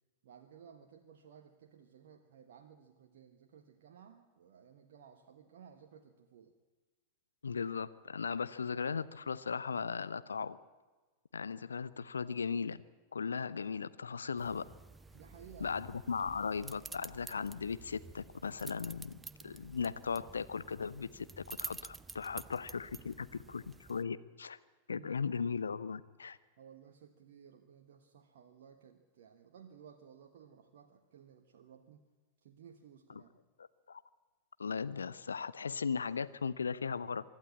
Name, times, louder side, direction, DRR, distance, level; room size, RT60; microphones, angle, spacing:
voice 1, 0.2-6.5 15.1-15.8 24.9-25.1 26.6-32.0 32.4-33.4, right 8 dB, 55° right, 4 dB, 1.3 m, -57 dB
voice 2, 7.4-10.6 11.3-12.8 13.1-14.6 15.6-19.2 19.4-24.6 24.9-26.4 33.6-34.0 34.6-37.2, left 5 dB, 75° left, 16 dB, 0.7 m, -37 dB
sound 1, 14.4-24.0, right 4 dB, 10° right, 0.5 m, -50 dB
24.5 x 12.0 x 8.6 m, 1.3 s
figure-of-eight pair, 90°, 0 cm